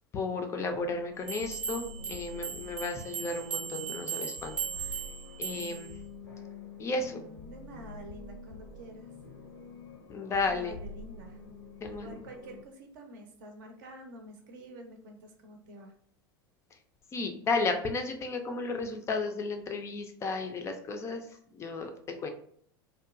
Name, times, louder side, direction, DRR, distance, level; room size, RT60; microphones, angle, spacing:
voice 1, 0.1-4.9 5.4-6.0 6.8-7.2 10.1-10.7 11.8-12.2 17.1-22.3, left 3 dB, 25° left, 5 dB, 0.3 m, -33 dB
sound 1, 0.7-12.6, left 3 dB, 80° left, 0.5 m, -47 dB
sound 2, 1.3-5.9, right 7 dB, 10° right, 0.7 m, -38 dB
voice 2, 7.0-9.1 10.5-11.4 11.9-15.9, right 1 dB, 55° right, 4 dB, 0.6 m, -48 dB
2.8 x 2.2 x 2.3 m, 0.64 s
figure-of-eight pair, 80°, 12 cm